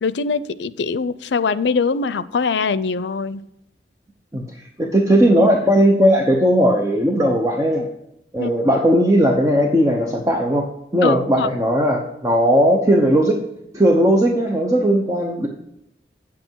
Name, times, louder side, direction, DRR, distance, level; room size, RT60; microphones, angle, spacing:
voice 1, 0.0-3.4 8.4-8.5 11.0-11.5, left 5 dB, 90° left, 16 dB, 0.5 m, -22 dB
voice 2, 4.3-7.9 8.3-10.7 10.9-13.4 13.7-15.5, equal, 20° right, 1 dB, 0.8 m, -17 dB
8.4 x 7.8 x 4.6 m, 0.80 s
head